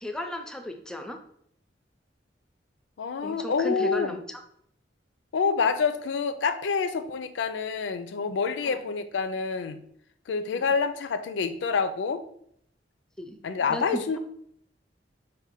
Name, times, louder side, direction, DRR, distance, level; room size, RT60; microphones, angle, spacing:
voice 1, 0.0-1.2 3.2-4.4 8.6-8.8 10.5-10.7 13.2-13.4 13.7-14.2, left 1 dB, 5° left, 5 dB, 0.4 m, -35 dB
voice 2, 3.0-4.2 5.3-9.8 10.3-12.2 13.4-14.2, left 5 dB, 90° left, 10 dB, 0.4 m, -27 dB
4.8 x 2.2 x 4.2 m, 0.68 s
head